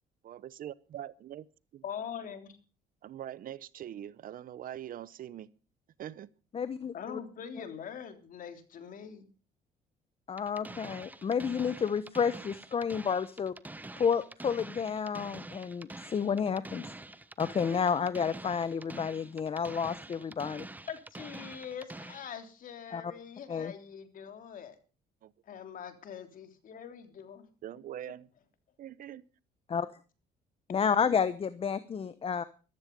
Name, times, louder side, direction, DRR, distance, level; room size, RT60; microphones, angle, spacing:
voice 1, 0.2-1.4 1.7-1.8 3.0-5.5 6.0-6.3 25.2-25.3 27.6-28.3 28.8-29.2, right 11 dB, 55° right, 0.9 m, -43 dB
voice 2, 1.8-2.6 6.9-9.3 20.9-24.7 25.5-27.5, left 8 dB, 55° left, 3.3 m, -43 dB
voice 3, 6.5-7.2 10.3-13.5 14.0-16.8 17.4-20.7 22.9-23.1 23.5-23.7 29.7-29.9 30.7-32.4, left 6 dB, 35° left, 1.0 m, -30 dB
sound 1, 10.4-22.4, right 2 dB, 10° right, 0.9 m, -46 dB
14.5 x 13.5 x 5.3 m
cardioid pair, 110°, 17 cm